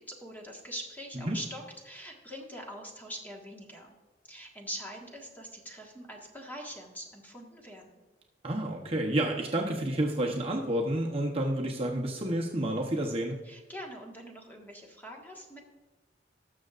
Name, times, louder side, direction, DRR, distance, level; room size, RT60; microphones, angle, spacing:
voice 1, 0.0-3.9 4.3-8.0 13.4-15.6, equal, 10° left, -1 dB, 1.6 m, -43 dB
voice 2, 8.4-13.4, right 1 dB, 30° right, 0 dB, 0.9 m, -30 dB
19.5 x 6.5 x 2.5 m, 1.3 s
head